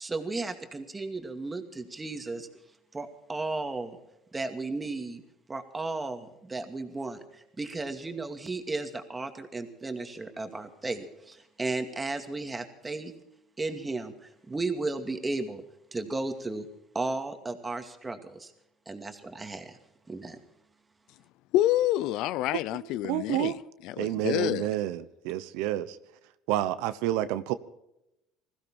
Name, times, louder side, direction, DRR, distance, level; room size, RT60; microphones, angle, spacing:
voice 1, 0.0-2.5 2.9-4.0 4.3-5.2 5.5-13.1 13.6-15.6 15.9-16.7 16.9-18.5 18.9-19.8 20.1-20.4, right 3 dB, 15° right, 2.3 m, -34 dB
voice 2, 21.5-23.5 23.8-24.7, left 14 dB, 70° left, 0.6 m, -27 dB
voice 3, 22.7-23.5 24.0-26.0 26.5-27.5, right 14 dB, 80° right, 0.9 m, -29 dB
20.5 x 15.5 x 4.4 m
supercardioid pair, 105°, 0 cm